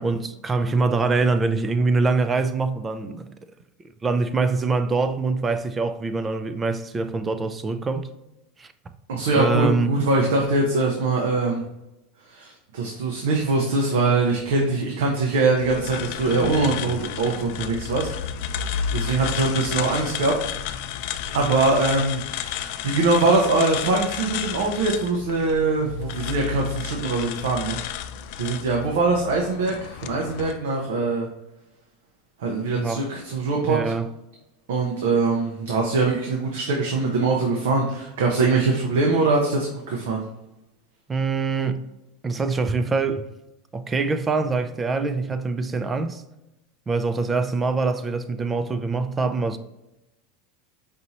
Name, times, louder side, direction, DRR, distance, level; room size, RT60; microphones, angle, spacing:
voice 1, 0.0-3.3 4.0-8.1 8.6-8.7 9.3-9.9 32.8-33.1 33.6-34.1 41.1-41.8 42.2-43.2 43.7-46.2 46.9-49.6, right 3 dB, 15° right, 0.4 m, -24 dB
voice 2, 9.1-11.6 12.2-18.1 18.9-20.4 21.3-27.8 28.4-31.3 32.4-33.9 34.7-40.2, right 3 dB, 85° right, 0.8 m, -22 dB
sound 1, 15.6-30.5, left 9 dB, 60° left, 0.4 m, -32 dB
5.3 x 2.8 x 3.0 m
supercardioid pair, 140°, 0 cm